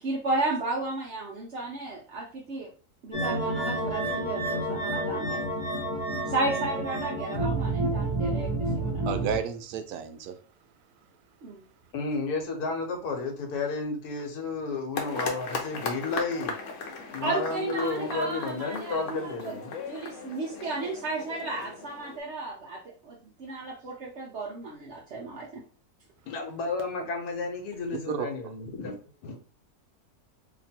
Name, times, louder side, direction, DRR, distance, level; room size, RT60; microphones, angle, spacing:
voice 1, 0.0-2.7 3.0-5.4 6.3-9.2 11.4-11.6 17.2-19.6 19.9-25.6, right 2 dB, 55° right, 0.9 m, -33 dB
sound 1, 3.1-9.4, right 2 dB, 25° left, 0.9 m, -29 dB
voice 2, 9.0-10.4 28.1-28.3, right 8 dB, 75° right, 1.0 m, -32 dB
voice 3, 11.9-16.5 17.1-19.7 26.3-29.4, left 3 dB, 85° left, 1.4 m, -32 dB
sound 2, 14.9-22.2, left 4 dB, 60° left, 1.0 m, -37 dB
2.9 x 2.6 x 4.3 m
omnidirectional pair, 1.6 m